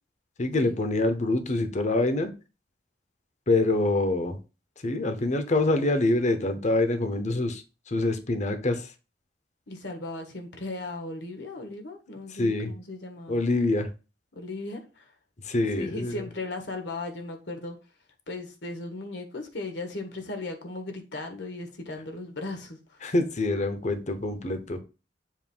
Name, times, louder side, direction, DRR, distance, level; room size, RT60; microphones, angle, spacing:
voice 1, 0.4-2.3 3.5-4.4 4.8-7.6 7.9-8.9 12.4-12.7 13.3-13.9 15.4-16.1 23.0-24.8, left 2 dB, 45° left, 0.8 m, -25 dB
voice 2, 9.7-13.4 14.3-15.1 15.7-17.8 18.3-23.1, left 2 dB, 80° left, 1.5 m, -37 dB
7.3 x 2.6 x 5.4 m
head